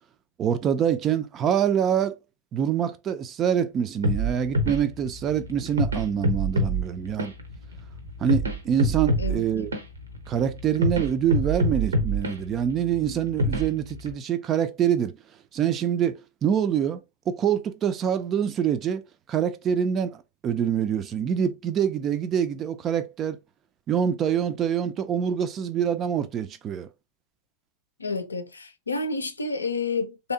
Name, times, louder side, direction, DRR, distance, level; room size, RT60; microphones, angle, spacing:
voice 1, 0.4-2.1 2.5-7.3 8.2-9.7 10.3-15.2 15.5-19.0 19.3-23.4 23.9-26.9, right 9 dB, 30° right, 0.4 m, -25 dB
sound 1, 4.0-14.1, equal, 75° right, 0.7 m, -27 dB
voice 2, 28.0-30.3, left 3 dB, 80° left, 0.5 m, -29 dB
3.3 x 2.7 x 2.7 m
figure-of-eight pair, 90°, 0 cm